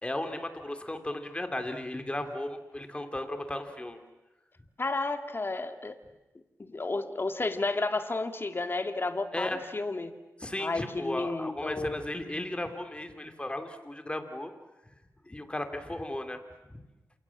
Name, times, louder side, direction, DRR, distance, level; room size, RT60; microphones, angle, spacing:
voice 1, 0.0-4.0 9.3-9.6 10.4-14.5 15.2-16.4 16.7-16.8, left 1 dB, 20° left, 6 dB, 3.3 m, -35 dB
voice 2, 4.8-6.0 6.6-10.2 10.6-12.0, left 3 dB, 40° left, 7 dB, 2.2 m, -32 dB
28.5 x 27.5 x 7.4 m, 1.1 s
cardioid pair, 65°, 6 cm